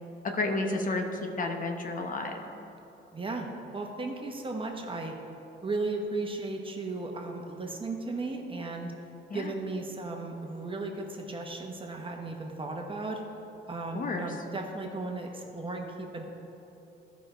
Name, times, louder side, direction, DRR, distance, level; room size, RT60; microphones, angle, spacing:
voice 1, 0.2-2.4 9.3-9.5 13.9-14.3, left 2 dB, 40° left, 4 dB, 0.9 m, -31 dB
voice 2, 3.1-5.1 5.6-8.9 9.3-13.2 13.7-16.2, right 3 dB, 25° right, 2 dB, 1.1 m, -35 dB
13.0 x 5.3 x 4.6 m, 2.9 s
cardioid pair, 90°, 20 cm